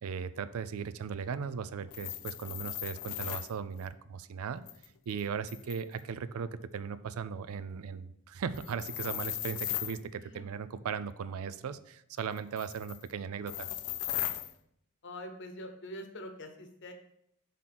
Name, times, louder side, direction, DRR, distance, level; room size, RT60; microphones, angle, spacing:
voice 1, 0.0-4.6 5.1-13.7, right 6 dB, 75° right, 13 dB, 0.4 m, -38 dB
sound 1, 1.9-3.5 4.7-6.0 8.5-10.0 12.4-13.0 13.5-14.5, left 13 dB, 75° left, 0.5 m, -37 dB
voice 2, 10.2-10.5 15.0-16.9, left 1 dB, 55° left, 6 dB, 0.9 m, -44 dB
5.9 x 3.6 x 5.8 m, 0.71 s
head